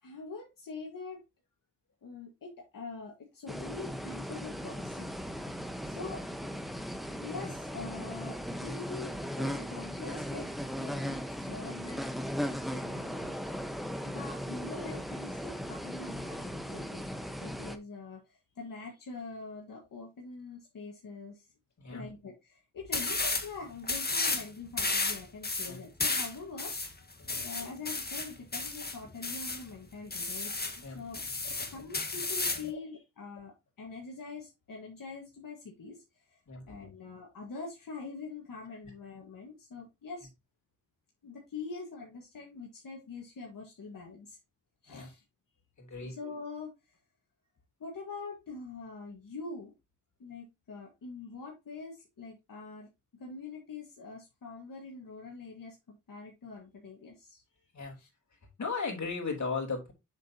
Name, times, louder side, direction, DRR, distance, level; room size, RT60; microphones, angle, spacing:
voice 1, 0.0-1.2 2.0-5.1 5.9-6.2 7.1-10.5 10.8-12.1 12.7-13.3 14.0-17.0 17.4-21.5 21.9-26.7 27.4-30.5 30.9-31.2 31.6-36.4 36.7-40.3 41.2-44.4 44.8-45.2 46.0-46.7 47.8-49.7 50.2-57.4 58.0-58.1, left 4 dB, 90° left, -1 dB, 1.7 m, -44 dB
sound 1, 3.5-17.8, equal, ahead, 1.1 m, -37 dB
sound 2, 22.9-23.5 23.8-24.5 24.8-29.6 30.1-30.8 31.1-32.7, left 3 dB, 30° left, 1.5 m, -32 dB
voice 2, 27.2-27.6 30.8-31.0 31.4-31.7 32.7-32.8 36.5-36.9 38.8-38.9 44.9-45.1 45.8-46.1 57.7-58.0 58.6-59.9, left 4 dB, 60° left, 0 dB, 3.3 m, -38 dB
7.3 x 6.9 x 2.8 m, 0.23 s
wide cardioid pair, 75°, 32 cm